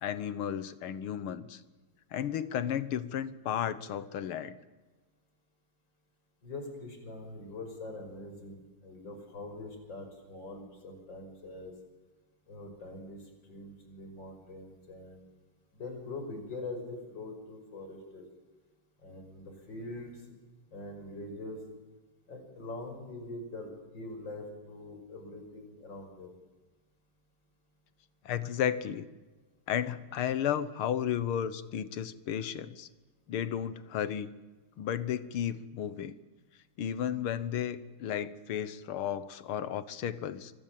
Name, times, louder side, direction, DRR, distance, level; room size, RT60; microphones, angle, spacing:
voice 1, 0.0-1.6 2.1-4.6 28.3-29.1 29.7-32.9 33.3-34.3 34.8-36.2 36.8-40.5, left 9 dB, 90° left, 14 dB, 2.0 m, -33 dB
voice 2, 6.4-11.7 12.4-15.3 15.7-18.3 19.0-20.4 20.7-21.6 22.3-26.3, left 2 dB, 60° left, 5 dB, 6.2 m, -43 dB
28.0 x 25.5 x 7.6 m, 1.2 s
omnidirectional pair, 2.3 m